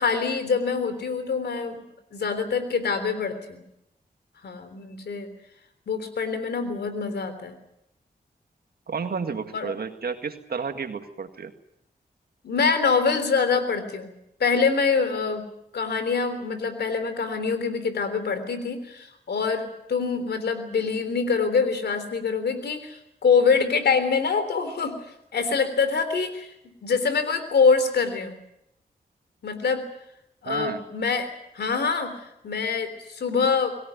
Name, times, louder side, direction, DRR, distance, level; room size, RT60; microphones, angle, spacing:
voice 1, 0.0-1.8 2.1-3.6 4.4-5.3 5.9-7.5 9.5-9.7 12.4-14.1 14.4-15.5 15.7-25.0 25.3-26.5 26.8-28.4 29.4-29.8 30.4-32.1 32.4-33.7, left 5 dB, 85° left, 10 dB, 3.5 m, -25 dB
voice 2, 8.9-11.5 30.5-30.8, right 5 dB, 70° right, 7 dB, 2.0 m, -31 dB
24.0 x 17.0 x 9.4 m, 0.81 s
cardioid pair, 55°, 17 cm